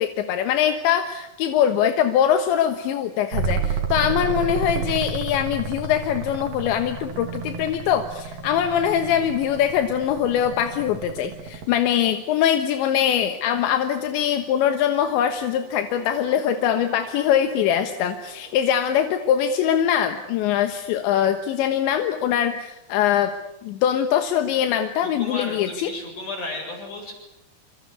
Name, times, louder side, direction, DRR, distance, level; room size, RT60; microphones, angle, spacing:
voice 1, 0.0-23.3 23.6-25.9, left 9 dB, 80° left, 7 dB, 3.6 m, -22 dB
sound 1, 3.3-11.9 14.1-18.7, right 4 dB, 55° right, 3.7 m, -32 dB
voice 2, 25.2-27.1, left 2 dB, 45° left, 2 dB, 9.4 m, -33 dB
27.0 x 26.0 x 8.3 m, 0.86 s
omnidirectional pair, 5.2 m